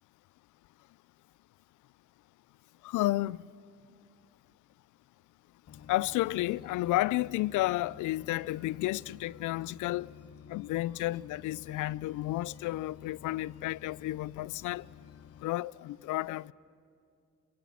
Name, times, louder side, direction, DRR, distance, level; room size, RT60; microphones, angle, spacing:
voice 1, 2.8-3.5 5.9-10.1 10.5-14.8 15.4-16.5, left 17 dB, 80° left, 0.5 m, -32 dB
sound 1, 5.7-15.4, left 9 dB, 55° left, 0.9 m, -52 dB
25.5 x 22.5 x 7.1 m
cardioid pair, 90°, 30 cm